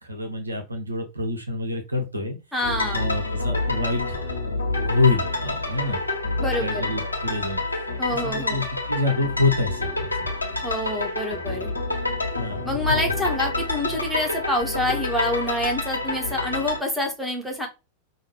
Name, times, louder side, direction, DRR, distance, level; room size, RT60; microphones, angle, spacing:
voice 1, 0.0-2.4 2.9-6.0 6.6-7.6 8.1-10.3 12.4-12.7, left 2 dB, 80° right, 5 dB, 1.0 m, -27 dB
voice 2, 2.5-3.1 6.4-6.9 8.0-8.6 10.6-11.7 12.6-17.7, left 1 dB, ahead, 0 dB, 1.7 m, -27 dB
sound 1, 2.6-16.8, left 2 dB, 85° left, 1.3 m, -28 dB
5.6 x 2.8 x 2.9 m, 0.26 s
figure-of-eight pair, 90°, 0 cm